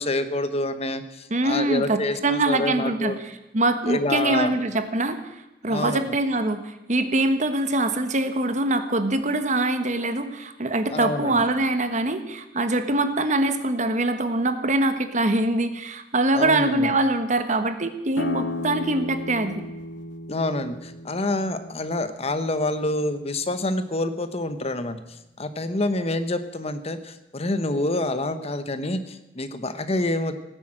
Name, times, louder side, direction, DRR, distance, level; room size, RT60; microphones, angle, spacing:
voice 1, 0.0-3.2 3.9-4.5 5.7-6.1 10.9-11.4 16.3-16.9 20.3-25.0 25.4-30.4, left 2 dB, 35° left, 11 dB, 1.0 m, -27 dB
voice 2, 1.3-5.2 5.6-19.6, right 2 dB, 45° right, 9 dB, 1.4 m, -23 dB
sound 1, 18.1-23.5, left 2 dB, 85° left, 0.9 m, -35 dB
17.5 x 10.0 x 7.6 m, 0.99 s
head